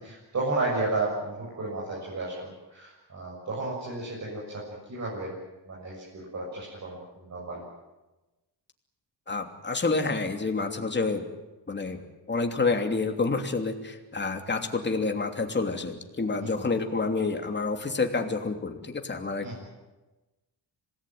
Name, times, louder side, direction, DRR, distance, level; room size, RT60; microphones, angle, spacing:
voice 1, 0.0-4.4 4.9-5.3 5.7-7.6 16.4-16.5 19.4-19.5, right 2 dB, 40° right, -4 dB, 7.3 m, -32 dB
voice 2, 9.3-11.2 11.7-12.0 12.3-19.6, left 3 dB, 25° left, 5 dB, 3.0 m, -28 dB
26.5 x 19.5 x 9.3 m, 1.1 s
cardioid pair, 120°, 41 cm